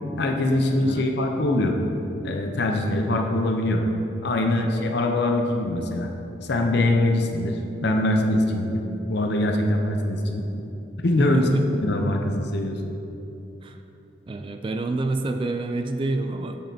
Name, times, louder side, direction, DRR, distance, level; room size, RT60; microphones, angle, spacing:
voice 1, 0.2-1.7 2.2-3.9 4.2-6.1 6.5-8.8 9.1-10.4 11.0-11.5 11.8-12.8, left 1 dB, 65° left, 3 dB, 0.7 m, -23 dB
voice 2, 11.2-11.7 13.6-13.8 14.3-16.6, right 2 dB, 30° right, 6 dB, 0.3 m, -27 dB
7.4 x 7.3 x 2.8 m, 2.9 s
head